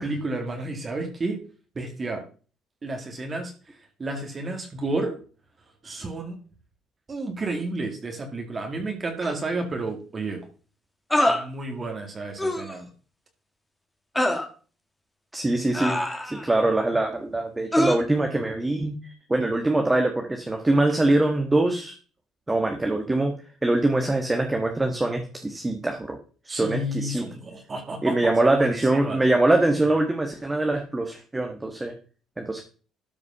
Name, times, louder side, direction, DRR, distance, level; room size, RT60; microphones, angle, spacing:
voice 1, 0.0-1.4 1.8-2.2 2.8-5.2 5.8-6.4 7.1-10.4 11.3-12.9 26.5-29.2, right 2 dB, 30° right, 3 dB, 2.2 m, -31 dB
sound 1, 9.2-9.3 11.1-11.4 12.4-12.7 14.2-14.5 15.7-16.5 17.7-18.0, left 1 dB, 5° left, 1.8 m, -24 dB
voice 2, 15.3-16.0 16.2-21.9 22.5-23.3 23.6-26.2 26.4-27.2 28.0-31.9 32.4-32.6, right 2 dB, 15° right, 3 dB, 1.4 m, -23 dB
13.0 x 4.8 x 5.7 m, 0.38 s
cardioid pair, 120°, 0 cm